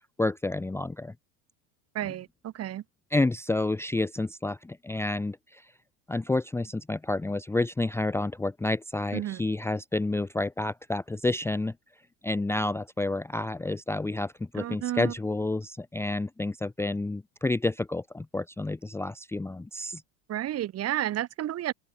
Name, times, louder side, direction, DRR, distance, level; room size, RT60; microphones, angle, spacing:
voice 1, 0.2-1.1 3.1-5.6 6.1-11.7 12.2-20.0, left 2 dB, 5° left, 0.7 m, -29 dB
voice 2, 1.9-2.8 9.1-9.4 14.6-15.1 20.3-21.7, right 12 dB, 35° right, 1.7 m, -31 dB
open air
supercardioid pair, 110°, 41 cm